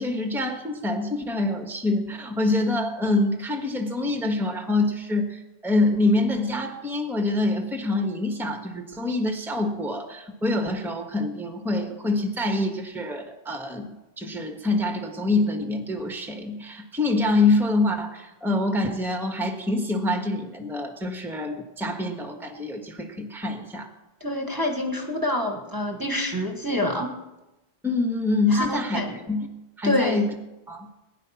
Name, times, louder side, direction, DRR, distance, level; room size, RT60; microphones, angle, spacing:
voice 1, 0.0-13.9 14.2-23.9 27.8-29.0 29.3-29.5 29.8-30.3 30.7-30.9, left 2 dB, ahead, 4 dB, 1.4 m, -25 dB
voice 2, 24.2-27.2 28.5-29.2 29.8-30.2, left 1 dB, 20° right, 3 dB, 1.6 m, -26 dB
20.5 x 10.5 x 5.8 m, 0.99 s
omnidirectional pair, 1.1 m